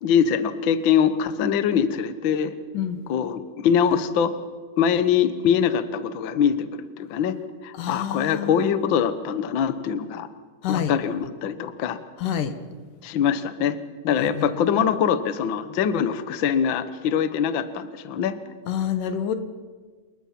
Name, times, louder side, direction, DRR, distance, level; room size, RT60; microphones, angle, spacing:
voice 1, 0.0-2.5 3.1-4.3 4.8-7.4 7.6-10.3 10.7-12.0 13.0-13.8 14.0-18.4, left 8 dB, 60° left, 11 dB, 1.3 m, -23 dB
voice 2, 7.8-8.7 10.6-10.9 12.2-12.5 14.2-14.6 18.7-19.4, left 9 dB, 90° left, 9 dB, 3.1 m, -27 dB
28.5 x 21.0 x 5.9 m, 1.5 s
omnidirectional pair, 3.6 m